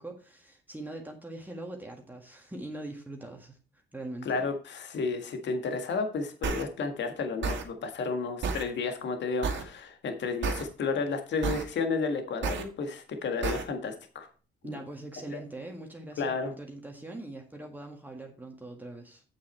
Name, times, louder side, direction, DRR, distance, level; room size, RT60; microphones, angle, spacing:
voice 1, 0.0-3.6 3.9-4.5 14.6-19.2, right 2 dB, 10° right, 1 dB, 1.7 m, -42 dB
voice 2, 4.2-14.3 14.6-14.8 16.2-16.5, left 4 dB, 65° left, 6 dB, 1.7 m, -32 dB
sound 1, 6.4-6.6 7.4-7.6 8.4-8.6 9.4-9.6 10.4-10.6 11.4-11.6 12.4-12.6 13.4-13.6, right 5 dB, 70° right, 2.0 m, -30 dB
8.6 x 7.4 x 4.4 m, 0.36 s
cardioid pair, 90°, 20 cm